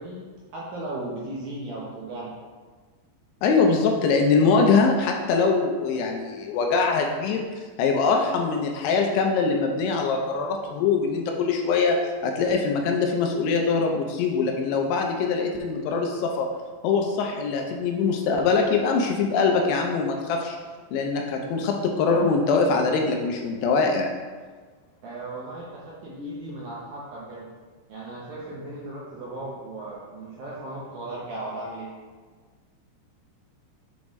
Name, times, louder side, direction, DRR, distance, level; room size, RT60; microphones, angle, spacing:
voice 1, 0.0-2.3 3.9-4.0 25.0-27.5 27.9-31.9, right 2 dB, 75° right, -5 dB, 2.2 m, -36 dB
voice 2, 3.4-7.5 7.8-12.0 12.2-16.5 16.8-20.6 20.9-24.1, left 4 dB, 80° left, 2 dB, 2.6 m, -23 dB
7.0 x 4.9 x 3.1 m, 1.5 s
omnidirectional pair, 5.0 m